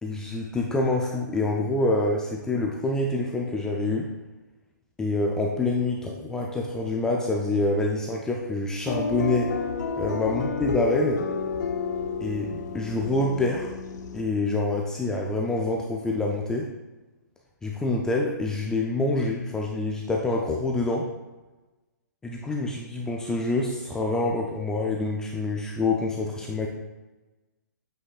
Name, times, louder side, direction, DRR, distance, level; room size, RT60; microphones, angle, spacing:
voice 1, 0.0-4.1 5.0-9.5 10.0-11.2 12.2-13.7 14.1-16.7 17.6-21.1 22.2-26.7, left 2 dB, 5° left, -1 dB, 0.4 m, -26 dB
sound 1, 8.9-14.2, left 4 dB, 65° left, 0.8 m, -30 dB
8.2 x 5.6 x 2.3 m, 1.1 s
hypercardioid pair, 145°, 10 cm